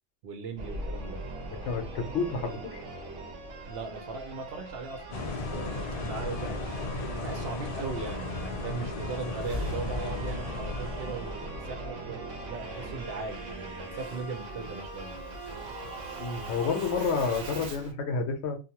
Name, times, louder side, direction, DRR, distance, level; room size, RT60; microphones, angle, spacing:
voice 1, 0.2-1.3 3.6-6.7 7.2-15.2, right 4 dB, 65° right, 0.7 m, -39 dB
Singing / Musical instrument, 0.6-17.9, right 2 dB, 90° right, 1.0 m, -40 dB
voice 2, 1.6-2.8 16.2-18.6, left 5 dB, 70° left, 0.9 m, -30 dB
sound 1, 4.9-17.6, left 3 dB, 5° right, 0.6 m, -52 dB
sound 2, 5.1-11.7, left 3 dB, 50° left, 0.4 m, -36 dB
2.7 x 2.1 x 2.8 m
omnidirectional pair, 1.2 m